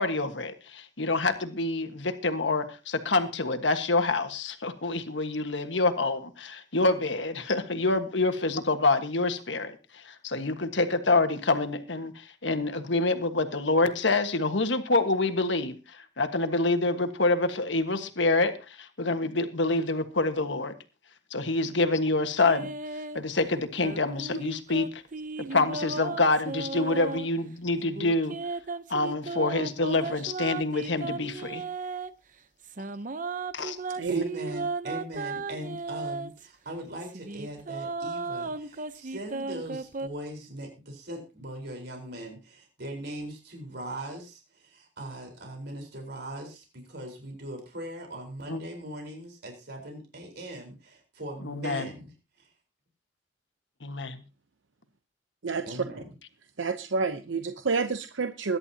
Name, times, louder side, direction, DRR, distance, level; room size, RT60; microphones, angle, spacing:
voice 1, 0.0-20.7 21.3-22.7 23.1-24.9 25.5-28.4 28.9-31.6 33.5-33.8 48.5-48.6 51.4-51.9 53.8-54.2, left 3 dB, 70° left, 7 dB, 1.5 m, -27 dB
sound 1, 22.4-23.2 23.8-27.3 27.8-32.1 32.6-36.5 37.0-40.1, right 3 dB, 45° right, 0.8 m, -35 dB
voice 2, 34.1-52.1 52.4-52.5 55.7-56.1, right 1 dB, 60° right, 2 dB, 4.3 m, -40 dB
voice 3, 55.4-55.8 56.6-58.6, right 4 dB, 85° right, 8 dB, 0.8 m, -29 dB
21.5 x 11.0 x 2.9 m, 0.30 s
head